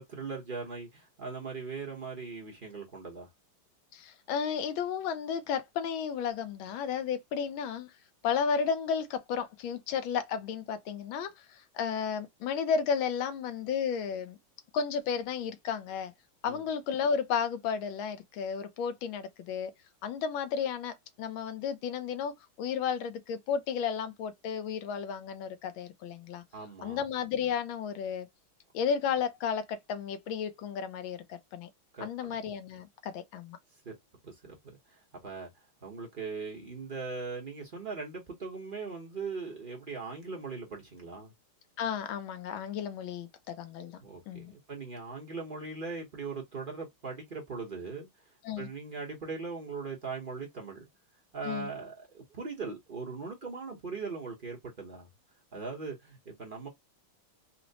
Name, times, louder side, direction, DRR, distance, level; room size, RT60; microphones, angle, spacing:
voice 1, 0.0-3.3 16.4-16.6 26.5-27.0 31.9-32.3 33.8-34.0 34.2-35.5 35.8-41.3 44.0-48.1 48.6-50.9 51.3-55.1 55.5-56.7, right 4 dB, 40° right, 0.7 m, -40 dB
voice 2, 3.9-7.9 8.2-14.4 14.7-16.1 16.4-19.7 20.0-26.4 26.8-28.3 28.7-31.7 32.0-33.6 41.8-44.0 44.3-44.5 48.4-48.7 51.4-51.7, left 7 dB, 80° left, 1.4 m, -33 dB
4.3 x 2.0 x 2.7 m
omnidirectional pair, 2.2 m